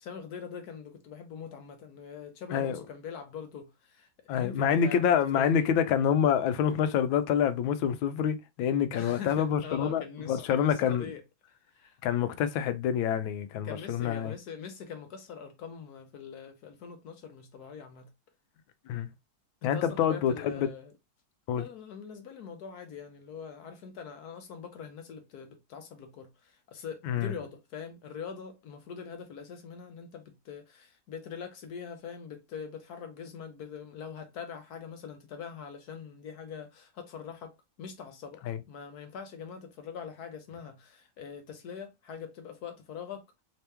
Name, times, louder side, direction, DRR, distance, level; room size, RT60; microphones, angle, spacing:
voice 1, 0.0-4.1 4.3-5.5 8.9-11.2 11.7-12.0 13.6-18.1 19.6-20.9 21.5-43.3, left 6 dB, 65° left, 1.2 m, -43 dB
voice 2, 4.3-11.1 12.0-14.3 18.9-19.1 19.6-20.7 21.5-21.7 27.0-27.3 38.4-38.6, left 8 dB, 85° left, 1.4 m, -27 dB
3.5 x 2.9 x 3.3 m
omnidirectional pair, 2.1 m